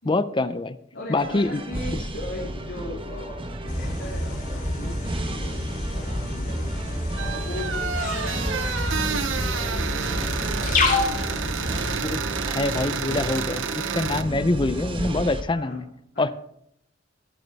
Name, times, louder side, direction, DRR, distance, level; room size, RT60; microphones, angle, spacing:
voice 1, 0.0-0.8 1.1-1.6 12.1-15.9 16.2-16.3, left 2 dB, 25° left, 13 dB, 0.5 m, -25 dB
voice 2, 0.9-5.0 5.3-6.8 7.2-11.4 14.1-14.4 15.5-15.8 16.1-16.3, left 1 dB, 80° left, -6 dB, 3.9 m, -38 dB
sound 1, 1.2-15.4, right 1 dB, 30° right, 1.3 m, -34 dB
sound 2, 3.7-12.0, left 2 dB, 45° left, 3.3 m, -28 dB
sound 3, 7.2-14.2, right 7 dB, 90° right, 0.8 m, -30 dB
22.5 x 8.0 x 3.4 m, 0.74 s
head